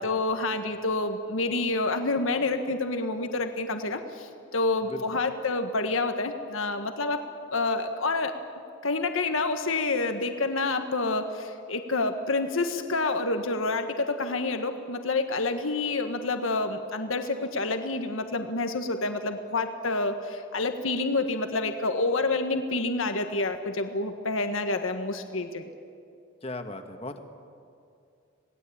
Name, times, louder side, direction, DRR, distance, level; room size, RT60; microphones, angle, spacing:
voice 1, 0.0-7.2 7.5-8.3 8.8-25.7, left 3 dB, 80° left, 6 dB, 1.6 m, -28 dB
voice 2, 4.9-5.2 26.4-27.2, left 2 dB, 30° left, 6 dB, 1.7 m, -37 dB
27.0 x 19.0 x 8.8 m, 2.5 s
head